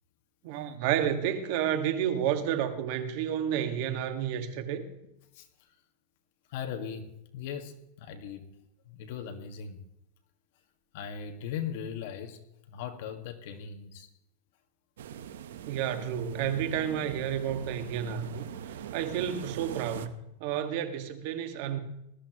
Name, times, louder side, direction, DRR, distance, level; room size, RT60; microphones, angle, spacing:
voice 1, 0.4-4.9 15.7-21.8, right 9 dB, 55° right, 1.9 m, -31 dB
voice 2, 6.5-8.5 8.9-9.8 10.9-12.4 12.7-14.1, left 7 dB, 60° left, 1.9 m, -38 dB
sound 1, 15.0-20.1, right 9 dB, 85° right, 1.0 m, -42 dB
20.0 x 13.5 x 3.1 m
supercardioid pair, 150°, 0 cm